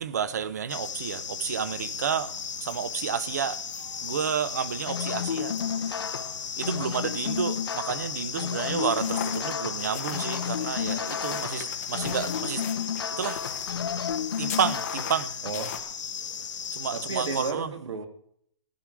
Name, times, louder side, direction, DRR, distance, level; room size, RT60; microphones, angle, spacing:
voice 1, 0.0-3.6 4.0-5.6 5.8-6.2 6.5-13.4 14.4-15.3 16.7-17.7, right 7 dB, 30° right, 0.7 m, -31 dB
sound 1, 0.7-17.5, left 7 dB, 70° left, 1.1 m, -36 dB
sound 2, 4.9-15.5, left 7 dB, 50° left, 0.7 m, -32 dB
sound 3, 8.9-15.8, left 7 dB, 30° left, 1.6 m, -39 dB
voice 2, 15.4-15.8 16.9-18.1, right 4 dB, 60° right, 2.5 m, -33 dB
15.0 x 11.0 x 4.8 m
hypercardioid pair, 180°, 16 cm